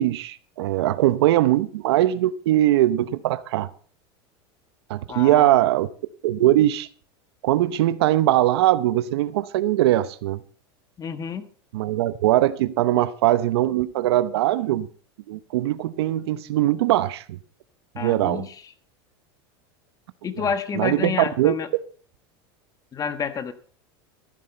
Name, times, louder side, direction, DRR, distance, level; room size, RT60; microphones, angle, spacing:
voice 1, 0.0-3.7 4.9-5.9 6.2-6.9 7.4-10.4 11.7-14.9 15.3-17.4 17.9-18.4 20.7-21.5, right 14 dB, 80° right, 0.8 m, -21 dB
voice 2, 5.1-5.6 11.0-11.5 17.9-18.7 20.2-21.7 22.9-23.5, left 7 dB, 25° left, 1.3 m, -29 dB
14.5 x 10.5 x 4.4 m
supercardioid pair, 120°, 13 cm